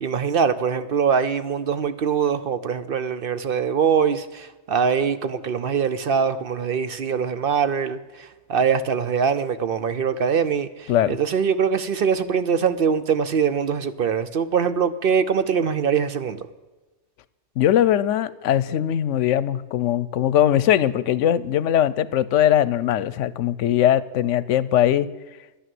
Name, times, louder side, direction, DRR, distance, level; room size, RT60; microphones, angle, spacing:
voice 1, 0.0-16.5, right 6 dB, 55° right, 0.8 m, -23 dB
voice 2, 17.6-25.1, left 11 dB, 85° left, 0.9 m, -20 dB
12.5 x 10.0 x 7.6 m
omnidirectional pair, 1.2 m